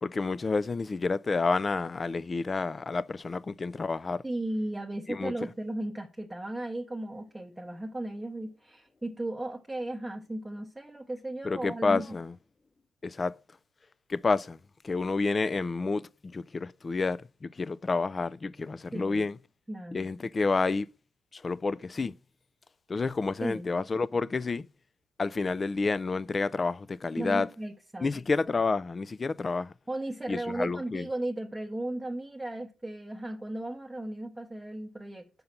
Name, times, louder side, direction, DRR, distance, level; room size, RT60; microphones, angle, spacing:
voice 1, 0.0-4.2 5.1-5.3 11.4-12.3 13.0-13.3 14.1-14.6 14.8-19.4 19.9-20.9 21.3-22.1 22.9-24.7 25.2-27.5 28.0-29.7 30.3-31.1, left 4 dB, 30° left, 0.3 m, -29 dB
voice 2, 4.2-12.2 18.9-19.3 19.7-20.1 23.4-23.7 27.2-28.1 29.9-35.3, right 1 dB, 10° right, 0.8 m, -36 dB
5.5 x 5.3 x 5.8 m
cardioid pair, 90°, 0 cm